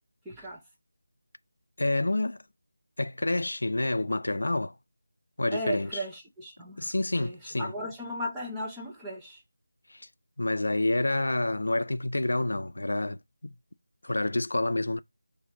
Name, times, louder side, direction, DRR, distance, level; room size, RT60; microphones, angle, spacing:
voice 1, 0.2-0.6 5.5-6.9 7.1-9.4, equal, 5° right, 0.6 m, -36 dB
voice 2, 1.8-2.4 3.0-4.8 5.4-6.0 6.8-7.7 9.9-10.1 10.4-13.5 14.0-15.0, left 2 dB, 80° left, 0.4 m, -28 dB
4.1 x 2.6 x 2.8 m
figure-of-eight pair, 175°, 0 cm